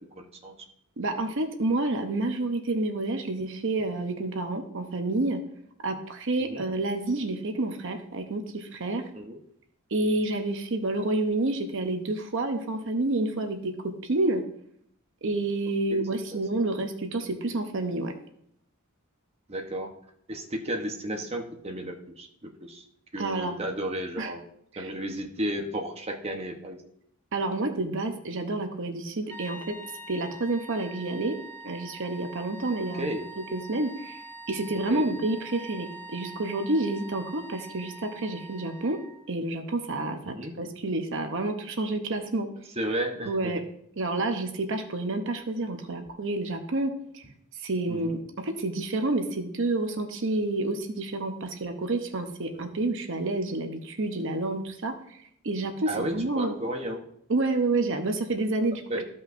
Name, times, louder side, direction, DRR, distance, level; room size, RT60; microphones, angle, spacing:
voice 1, 0.2-0.5 6.5-6.6 9.1-9.4 15.9-16.4 19.5-19.9 20.3-22.8 23.1-24.4 24.8-26.8 33.0-33.3 34.9-35.2 40.2-40.5 42.8-43.6 47.9-48.2 52.5-52.8 55.9-57.0 58.9-59.0, right 1 dB, 30° right, 2 dB, 1.0 m, -33 dB
voice 2, 1.0-5.4 5.8-9.0 9.9-14.4 15.2-18.1 23.2-23.6 24.2-24.3 24.7-24.9 27.3-29.8 30.1-31.4 31.6-34.2 34.5-39.0 39.3-42.5 43.3-43.6 44.0-47.2 47.6-56.5 57.3-58.8, right 2 dB, 55° right, 5 dB, 0.8 m, -29 dB
sound 1, 29.3-39.3, right 1 dB, 10° left, 0.8 m, -44 dB
14.5 x 5.4 x 2.6 m, 0.72 s
head